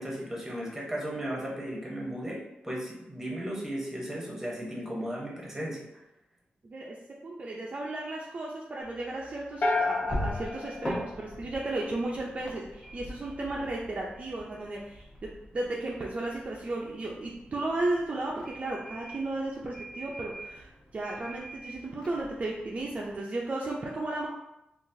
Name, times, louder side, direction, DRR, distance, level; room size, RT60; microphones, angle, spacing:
voice 1, 0.0-5.8, equal, 10° right, -4 dB, 0.8 m, -35 dB
voice 2, 6.6-7.0 7.2-15.0 15.5-24.3, right 2 dB, 40° right, -3 dB, 0.4 m, -34 dB
sound 1, 8.8-23.2, equal, 20° left, 0.8 m, -43 dB
sound 2, 9.6-11.9, left 2 dB, 50° left, 0.4 m, -31 dB
3.8 x 2.4 x 2.6 m, 0.89 s
wide cardioid pair, 125°, 3 cm